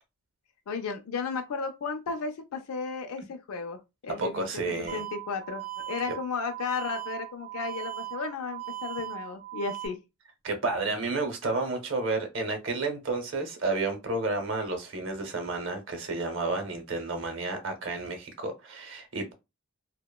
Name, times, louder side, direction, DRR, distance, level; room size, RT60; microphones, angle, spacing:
voice 1, 0.7-10.0, left 4 dB, 85° left, 0.4 m, -34 dB
voice 2, 4.2-5.0 6.1-6.2 10.4-19.3, right 3 dB, 60° right, 0.7 m, -31 dB
sound 1, 4.9-9.9, right 16 dB, 30° right, 0.4 m, -38 dB
2.8 x 2.1 x 2.2 m
head